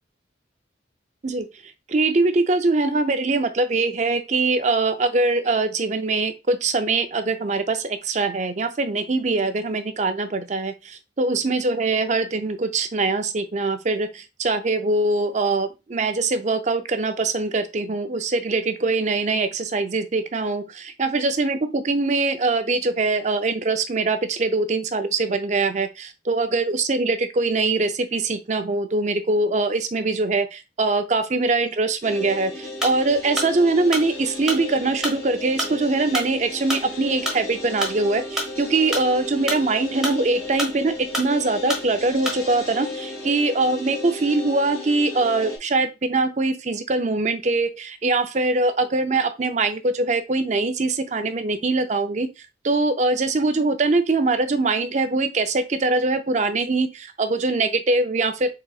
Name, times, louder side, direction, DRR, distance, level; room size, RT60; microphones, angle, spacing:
voice 1, 1.9-52.3 52.6-58.5, right 3 dB, 40° right, 8 dB, 0.5 m, -23 dB
sound 1, 32.0-45.6, left 2 dB, 15° left, 2.4 m, -35 dB
sound 2, 32.8-42.6, equal, 5° right, 1.2 m, -30 dB
4.8 x 3.9 x 2.4 m, 0.26 s
head